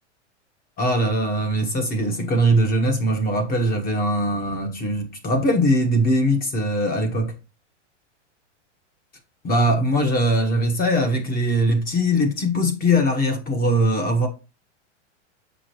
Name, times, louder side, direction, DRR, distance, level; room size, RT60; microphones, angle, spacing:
voice 1, 0.8-7.3 9.4-14.3, equal, 25° left, 1.3 m, -21 dB
6.9 x 5.2 x 3.0 m
hypercardioid pair, 130°, 36 cm